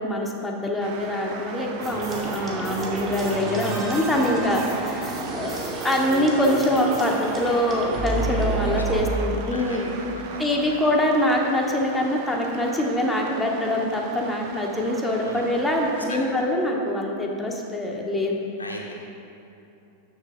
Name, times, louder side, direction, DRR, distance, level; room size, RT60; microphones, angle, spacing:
voice 1, 0.0-5.5 5.8-9.9 10.4-18.4, left 1 dB, 10° left, -1 dB, 0.7 m, -24 dB
sound 1, 0.8-16.1, right 6 dB, 45° right, 0.5 m, -39 dB
voice 2, 1.7-2.4 4.8-5.8 8.7-10.8 15.2-15.5 16.1-16.3 18.6-18.9, left 1 dB, 80° left, -1 dB, 0.8 m, -39 dB
sound 2, 1.8-9.0, right 2 dB, 25° right, 1.3 m, -30 dB
6.5 x 6.3 x 3.6 m, 2.8 s
figure-of-eight pair, 90°, 0 cm